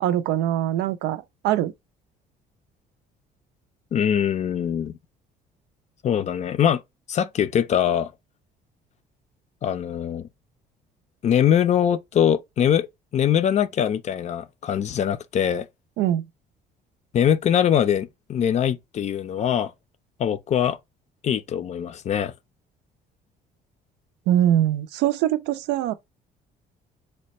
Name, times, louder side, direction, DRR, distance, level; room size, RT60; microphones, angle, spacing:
voice 1, 0.0-1.7 16.0-16.2 24.3-25.9, right 12 dB, 90° right, 0.5 m, -22 dB
voice 2, 3.9-5.0 6.0-6.8 7.1-8.1 9.6-10.3 11.2-12.9 13.1-15.7 17.1-19.7 20.2-20.8 21.2-22.3, left 9 dB, 40° left, 0.4 m, -22 dB
3.3 x 2.1 x 4.0 m
cardioid pair, 110°, 17 cm